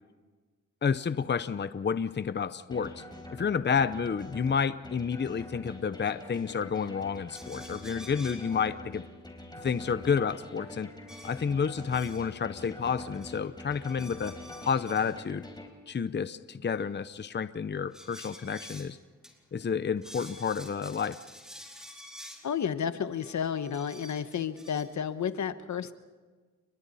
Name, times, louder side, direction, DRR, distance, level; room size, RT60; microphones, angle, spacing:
voice 1, 0.8-3.0 3.3-9.0 9.6-10.9 11.2-14.3 14.6-15.4 15.9-19.0 19.5-21.2, left 6 dB, 35° left, 13 dB, 0.7 m, -30 dB
sound 1, 2.7-15.7, left 1 dB, 15° left, 4.2 m, -45 dB
sound 2, 7.3-8.5 11.1-12.3 12.6-13.4 13.7-15.2 17.9-18.9 19.2-19.3 19.6-19.7 20.0-22.5 23.2-24.8, equal, ahead, 4.5 m, -49 dB
voice 2, 22.4-25.9, left 8 dB, 75° left, 11 dB, 1.1 m, -31 dB
30.0 x 23.0 x 4.2 m, 1.4 s
cardioid pair, 75°, 29 cm